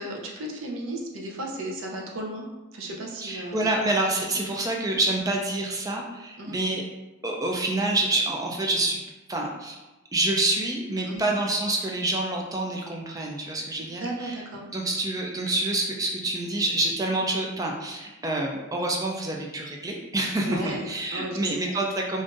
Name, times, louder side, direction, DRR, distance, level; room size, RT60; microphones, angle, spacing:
voice 1, 0.0-2.5 2.7-3.6 6.4-6.6 11.0-11.3 13.8-14.7 20.4-21.7, right 1 dB, 75° right, 0 dB, 0.6 m, -35 dB
voice 2, 3.2-6.8 7.2-9.0 9.3-9.8 10.1-14.4 14.7-22.2, right 2 dB, 15° right, 0 dB, 0.4 m, -27 dB
3.7 x 2.5 x 2.5 m, 1.1 s
head